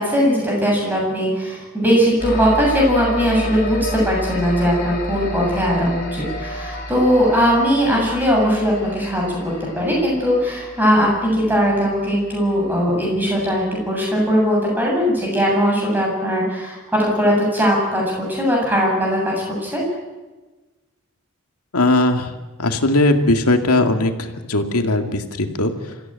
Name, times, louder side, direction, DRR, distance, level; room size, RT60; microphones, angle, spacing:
voice 1, 0.0-19.3 19.6-19.8, equal, 10° right, -2 dB, 7.9 m, -19 dB
sound 1, 2.2-14.0, equal, 40° left, 5.5 m, -31 dB
voice 2, 21.7-22.3 22.6-26.0, left 2 dB, 90° left, 5 dB, 2.2 m, -19 dB
26.0 x 15.5 x 9.1 m, 1.2 s
head